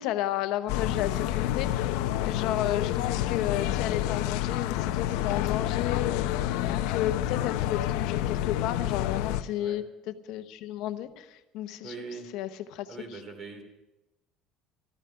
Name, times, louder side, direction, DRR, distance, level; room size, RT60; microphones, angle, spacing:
voice 1, 0.0-1.7 2.2-6.5 6.7-11.9 12.3-13.2, left 12 dB, 60° left, 10 dB, 1.0 m, -32 dB
sound 1, 0.7-9.4, left 12 dB, 85° left, 0.7 m, -28 dB
voice 2, 11.8-12.3 12.9-13.6, right 4 dB, 30° right, 5 dB, 2.9 m, -41 dB
14.0 x 14.0 x 5.8 m, 0.95 s
cardioid pair, 165°, 0 cm